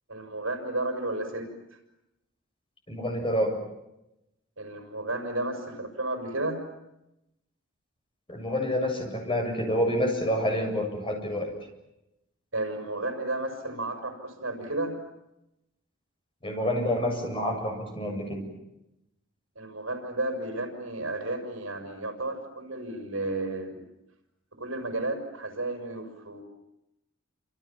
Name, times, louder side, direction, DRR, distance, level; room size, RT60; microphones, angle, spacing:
voice 1, 0.1-1.5 4.6-6.6 12.5-14.9 19.5-23.8 24.6-26.4, right 2 dB, 75° right, 4 dB, 6.3 m, -32 dB
voice 2, 2.9-3.6 8.3-11.5 16.4-18.5, equal, 25° left, 3 dB, 7.7 m, -28 dB
28.5 x 27.5 x 7.4 m, 0.88 s
head